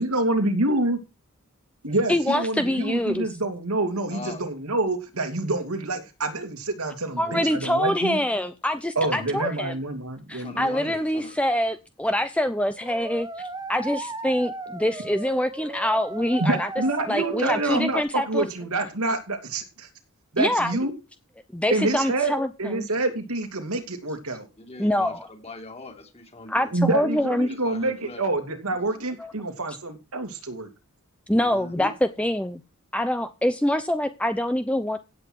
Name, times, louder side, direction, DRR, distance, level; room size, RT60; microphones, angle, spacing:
voice 1, 0.0-1.0 1.8-8.2 9.0-10.9 16.4-19.9 20.3-20.9 21.7-22.3 22.6-24.5 26.7-30.7, right 2 dB, 85° right, 2.8 m, -27 dB
voice 2, 2.1-3.3 7.2-9.8 10.3-16.7 17.1-18.5 20.4-20.7 21.5-22.9 24.8-25.3 26.5-27.5 29.2-29.3 31.3-32.6 32.9-35.0, left 1 dB, 5° left, 0.7 m, -25 dB
voice 3, 4.1-4.4 7.1-7.6 9.1-9.4 10.4-11.3 24.6-27.0 27.4-28.2 31.4-31.9, left 2 dB, 30° left, 2.9 m, -41 dB
sound 1, 12.8-18.0, right 3 dB, 15° right, 1.2 m, -36 dB
16.0 x 8.3 x 4.7 m
head